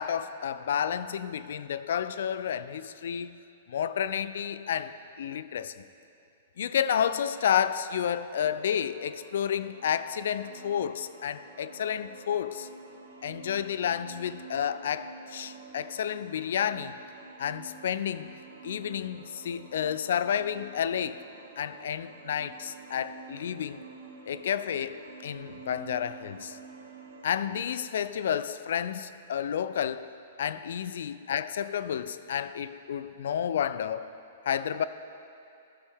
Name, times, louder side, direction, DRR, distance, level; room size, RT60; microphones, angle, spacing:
voice 1, 0.0-3.4 3.7-5.8 6.6-12.7 13.2-16.9 17.4-18.3 18.6-21.2 21.6-23.8 24.2-26.6 27.2-30.1 30.4-34.1 34.5-34.8, left 8 dB, 65° left, 14 dB, 0.3 m, -31 dB
sound 1, 8.3-27.6, right 4 dB, 70° right, 1.0 m, -49 dB
13.5 x 6.3 x 3.5 m, 2.6 s
hypercardioid pair, 115°, 0 cm